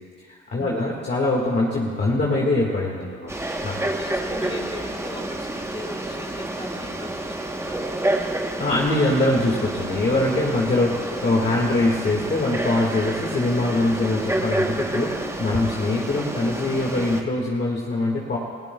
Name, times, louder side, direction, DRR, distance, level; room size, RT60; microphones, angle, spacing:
voice 1, 0.3-3.3 3.6-3.8 8.6-18.4, left 2 dB, 35° left, -3 dB, 1.8 m, -23 dB
Frog, 3.3-17.2, right 1 dB, 10° right, 1.0 m, -29 dB
voice 2, 3.9-8.4, left 1 dB, 15° left, -1 dB, 3.0 m, -39 dB
29.0 x 15.5 x 2.3 m, 2.1 s
cardioid pair, 90°, 30 cm